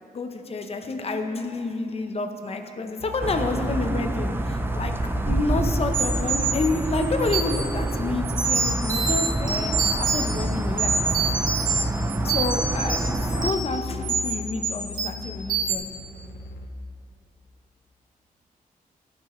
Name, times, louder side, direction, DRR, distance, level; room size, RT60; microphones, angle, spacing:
voice 1, 0.1-4.9 5.3-9.7 10.0-10.9 12.2-13.1 13.4-15.9, left 3 dB, 45° left, 5 dB, 0.7 m, -29 dB
sound 1, 3.0-16.7, left 2 dB, 85° left, 0.8 m, -38 dB
sound 2, 3.2-13.5, right 2 dB, 15° right, 0.4 m, -27 dB
sound 3, 5.9-7.7 8.2-10.4 10.8-11.8 12.1-13.7 14.0-14.4 14.6-15.2 15.5-15.8, right 5 dB, 65° right, 1.6 m, -26 dB
17.0 x 6.2 x 3.1 m, 2.7 s
wide cardioid pair, 120°, 15 cm